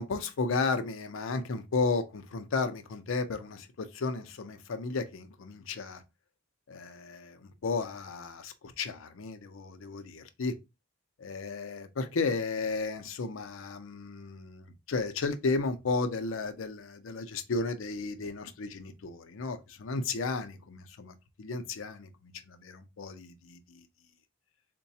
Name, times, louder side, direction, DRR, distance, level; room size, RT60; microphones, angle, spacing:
voice 1, 0.0-6.0 6.7-10.5 11.2-23.8, left 4 dB, 80° left, 0.5 m, -34 dB
3.9 x 2.2 x 2.7 m
head